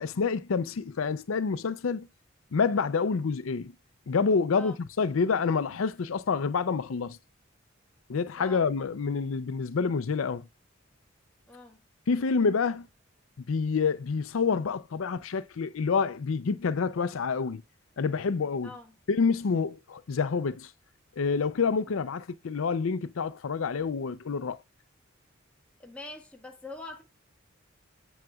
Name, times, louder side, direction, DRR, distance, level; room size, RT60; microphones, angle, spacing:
voice 1, 0.0-2.1 2.5-3.7 4.1-7.2 8.1-10.5 12.1-12.9 13.5-17.6 18.0-18.7 19.1-20.7 21.2-24.6, left 5 dB, 90° left, 0.5 m, -28 dB
voice 2, 8.4-8.7 11.5-11.8 18.6-18.9 21.9-22.0 25.8-27.0, left 2 dB, 5° left, 1.5 m, -44 dB
7.7 x 7.2 x 2.3 m
head